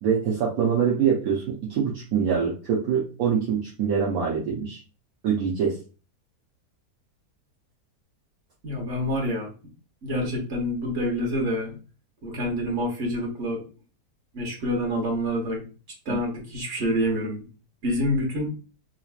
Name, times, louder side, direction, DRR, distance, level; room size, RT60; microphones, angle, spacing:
voice 1, 0.0-4.8 5.2-5.7 16.1-16.2, right 7 dB, 65° right, -4 dB, 1.2 m, -24 dB
voice 2, 8.6-9.5 10.0-11.8 12.2-13.6 14.3-15.6 16.0-17.4 17.8-18.5, equal, 45° right, -2 dB, 1.5 m, -27 dB
3.9 x 3.0 x 2.4 m, 0.34 s
omnidirectional pair, 1.8 m